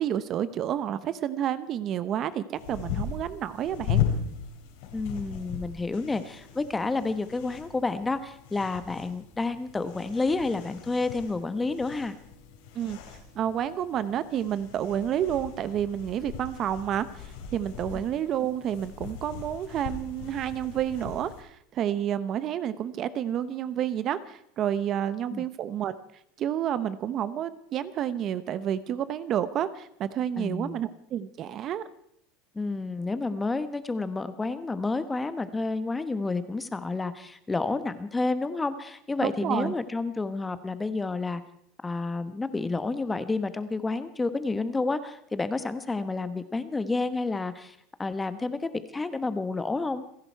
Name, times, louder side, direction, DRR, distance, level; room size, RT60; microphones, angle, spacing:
voice 1, 0.0-4.0 12.7-13.0 13.3-26.0 26.4-31.8 39.2-39.7, right 10 dB, 40° right, 14 dB, 0.8 m, -30 dB
sound 1, 2.5-21.4, left 8 dB, 75° left, 4.7 m, -37 dB
voice 2, 4.9-12.1 17.9-18.0 25.3-25.4 30.4-30.8 32.5-41.4 41.8-50.0, left 3 dB, 10° left, 12 dB, 1.1 m, -30 dB
28.5 x 11.0 x 4.6 m, 0.70 s
supercardioid pair, 135°, 0 cm